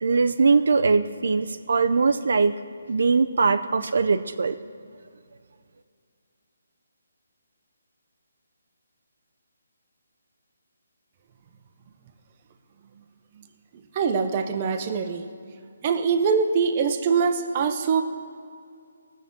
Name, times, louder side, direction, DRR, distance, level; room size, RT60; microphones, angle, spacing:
voice 1, 0.0-2.5 2.9-4.6, right 4 dB, 70° right, 10 dB, 0.5 m, -21 dB
voice 2, 13.9-15.3 15.8-18.0, right 5 dB, 25° right, 7 dB, 0.7 m, -23 dB
19.5 x 7.2 x 3.7 m, 2.3 s
hypercardioid pair, 170°, 0 cm